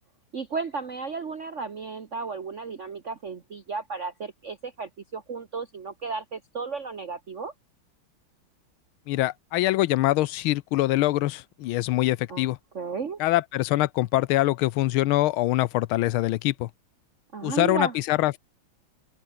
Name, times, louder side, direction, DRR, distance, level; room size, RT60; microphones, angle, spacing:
voice 1, 0.3-7.5 12.3-12.5 12.7-13.2 17.3-17.9, right 4 dB, 40° right, 1.5 m, -34 dB
voice 2, 9.1-12.6 13.2-16.7 17.4-18.4, left 16 dB, 90° left, 1.5 m, -24 dB
open air
omnidirectional pair, 2.2 m